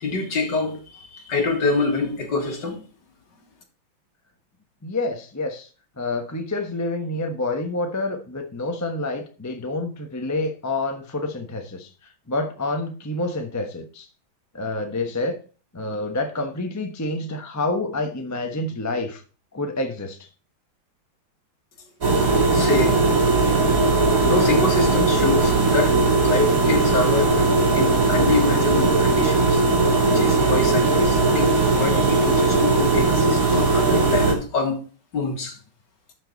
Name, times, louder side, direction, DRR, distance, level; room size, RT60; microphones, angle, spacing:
voice 1, 0.0-2.8 22.5-23.0 24.3-29.6 30.0-34.8 35.1-35.6, left 3 dB, 60° left, 2.6 m, -26 dB
voice 2, 4.8-5.7 6.0-11.9 12.3-14.1 14.5-15.4 15.7-19.2 19.5-20.2, left 2 dB, 15° left, 0.7 m, -28 dB
sound 1, 22.0-34.3, right 3 dB, 40° right, 2.9 m, -19 dB
12.0 x 5.7 x 4.0 m
omnidirectional pair, 2.2 m